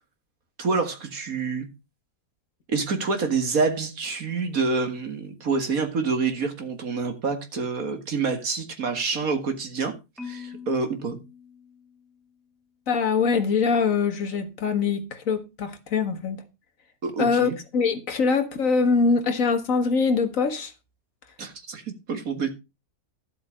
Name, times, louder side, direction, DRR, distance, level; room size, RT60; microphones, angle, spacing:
voice 1, 0.6-1.7 2.7-9.9 10.2-11.2 17.0-17.6 21.4-22.5, right 4 dB, 65° right, 2.4 m, -27 dB
Marimba xylophone, 10.2-12.4, left 6 dB, ahead, 1.1 m, -43 dB
voice 2, 12.9-16.4 17.2-20.7, left 5 dB, 60° left, 1.9 m, -23 dB
12.5 x 7.9 x 5.1 m
omnidirectional pair, 1.6 m